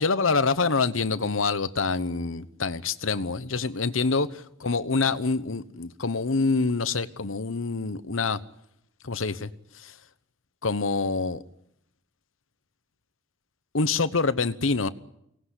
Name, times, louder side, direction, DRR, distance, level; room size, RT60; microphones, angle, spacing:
voice 1, 0.0-8.4 9.0-9.5 9.7-9.9 10.6-11.4 13.7-14.9, left 4 dB, 85° left, 1.1 m, -26 dB
24.5 x 19.0 x 9.8 m
head